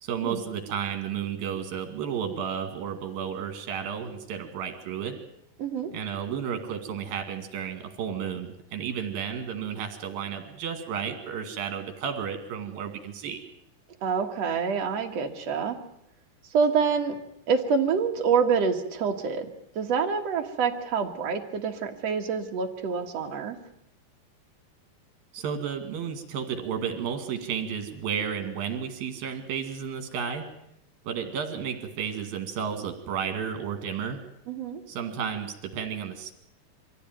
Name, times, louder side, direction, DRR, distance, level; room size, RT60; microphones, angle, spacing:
voice 1, 0.0-5.2 5.9-13.4 25.3-30.5 31.1-34.2 34.9-36.3, right 7 dB, 75° right, 7 dB, 3.9 m, -32 dB
voice 2, 5.6-5.9 14.0-15.8 16.5-17.2 17.5-19.5 19.8-23.6 34.5-34.8, right 6 dB, 55° right, 3 dB, 2.4 m, -26 dB
23.5 x 15.5 x 9.2 m, 0.78 s
omnidirectional pair, 4.2 m